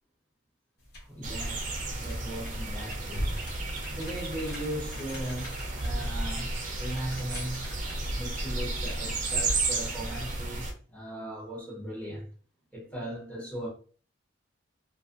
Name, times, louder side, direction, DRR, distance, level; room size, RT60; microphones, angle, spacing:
sound 1, 0.8-8.0, left 1 dB, 50° left, 0.9 m, -46 dB
voice 1, 1.0-3.4 3.9-7.8 8.1-12.3 12.7-13.7, right 1 dB, 10° left, 0.8 m, -38 dB
sound 2, 1.2-10.7, right 2 dB, 40° right, 0.4 m, -32 dB
2.5 x 2.4 x 2.4 m
head